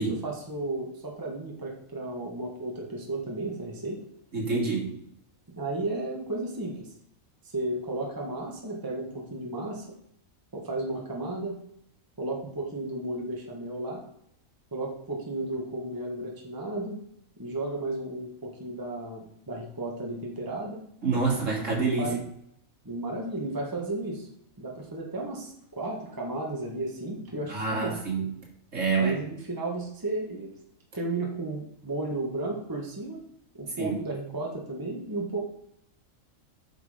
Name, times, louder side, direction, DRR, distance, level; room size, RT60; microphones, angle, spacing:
voice 1, 0.0-4.0 5.6-6.9 7.4-9.8 10.5-11.6 12.2-14.0 14.7-17.0 17.4-20.8 22.0-22.2 22.8-24.3 24.6-28.0 29.0-30.5 30.9-33.2 33.6-35.4, right 2 dB, 15° right, -1 dB, 1.5 m, -33 dB
voice 2, 4.3-5.0 21.0-22.1 27.5-28.3 28.7-29.2 33.8-33.9, right 4 dB, 65° right, -3 dB, 3.2 m, -27 dB
9.0 x 6.4 x 5.0 m, 0.75 s
omnidirectional pair, 1.4 m